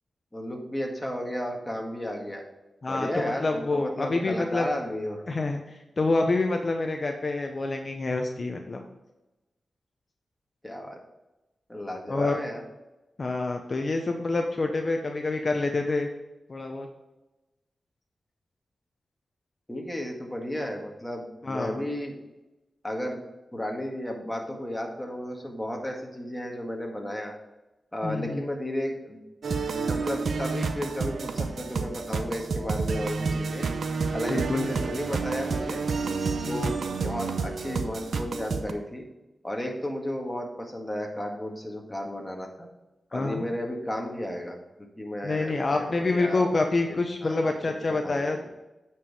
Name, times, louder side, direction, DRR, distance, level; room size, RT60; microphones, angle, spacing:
voice 1, 0.3-2.4 2.9-5.2 10.6-11.0 11.7-12.6 19.7-22.2 22.8-23.2 23.5-27.4 27.9-29.2 29.9-33.7 34.1-35.8 36.4-39.0 39.4-42.7 43.1-46.5 47.2-47.4 47.8-48.4, left 1 dB, 15° left, 1 dB, 1.8 m, -33 dB
voice 2, 2.8-4.7 5.3-8.8 12.1-12.4 13.2-16.1 16.5-16.9 21.4-21.8 28.0-28.4 34.3-34.7 36.4-36.7 43.1-43.4 45.2-48.4, left 3 dB, 50° left, 3 dB, 0.8 m, -27 dB
sound 1, 29.4-38.7, right 4 dB, 80° right, 0.6 m, -30 dB
9.0 x 4.7 x 4.9 m, 1.0 s
cardioid pair, 65°, 0 cm